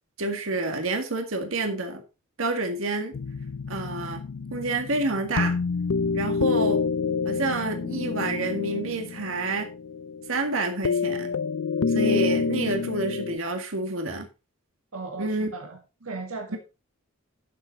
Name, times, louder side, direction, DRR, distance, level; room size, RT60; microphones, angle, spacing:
voice 1, 0.2-2.0 2.4-3.1 3.7-4.2 4.5-5.6 6.1-6.8 7.2-9.7 10.3-11.3 11.9-14.3 15.2-15.5, right 2 dB, 65° right, 1.8 m, -28 dB
sound 1, 3.1-13.4, left 5 dB, 65° left, 0.4 m, -28 dB
voice 2, 14.9-16.6, right 3 dB, 80° right, 1.8 m, -37 dB
11.0 x 7.1 x 4.1 m
head